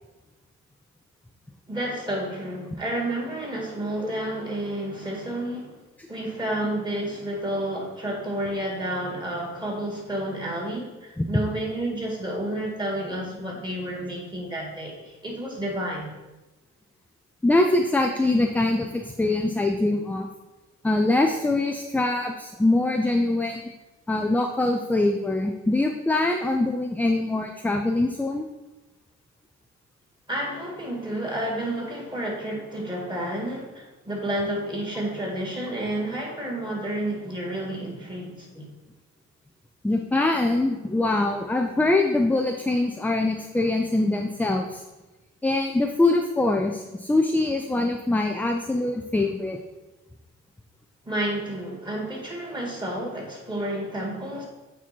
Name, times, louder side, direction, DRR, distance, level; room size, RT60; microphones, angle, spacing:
voice 1, 1.7-5.8 6.1-16.1 30.3-38.7 51.0-54.5, right 1 dB, 15° right, -2 dB, 2.1 m, -30 dB
voice 2, 17.4-20.3 20.8-23.6 24.1-28.5 39.8-44.8 45.4-49.6, left 2 dB, 5° left, 3 dB, 0.4 m, -23 dB
8.4 x 2.8 x 4.4 m, 1.1 s
cardioid pair, 90°, 30 cm